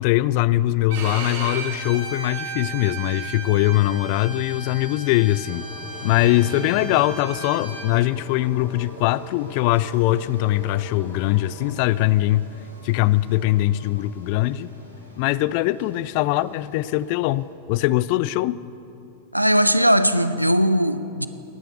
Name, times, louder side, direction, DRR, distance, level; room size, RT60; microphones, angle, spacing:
voice 1, 0.0-5.7 6.0-12.5 12.8-14.7 15.2-18.6, left 16 dB, 45° left, 0.3 m, -21 dB
Bowed string instrument, 0.9-7.9, right 4 dB, 50° right, 2.3 m, -35 dB
sound 1, 5.4-11.8, left 1 dB, 25° left, 4.4 m, -41 dB
sound 2, 5.7-17.4, left 1 dB, 85° left, 3.5 m, -44 dB
voice 2, 19.3-21.3, equal, 90° right, 0.5 m, -19 dB
18.5 x 9.2 x 6.9 m
figure-of-eight pair, 90°, 0 cm